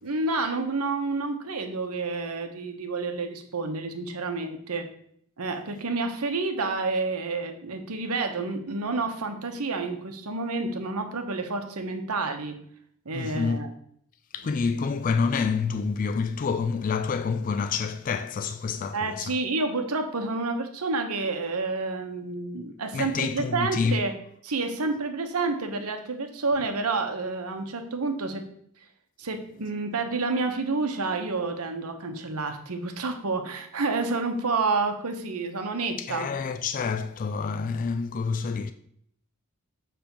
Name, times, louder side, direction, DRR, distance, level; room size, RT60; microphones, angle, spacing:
voice 1, 0.0-4.8 5.4-12.5 13.0-13.7 18.9-24.1 24.4-28.4 29.2-36.3, right 3 dB, 85° right, 1.0 m, -29 dB
voice 2, 13.1-13.6 14.3-19.4 22.9-24.0 36.0-38.7, left 5 dB, 35° left, 0.3 m, -28 dB
7.0 x 3.4 x 5.8 m
head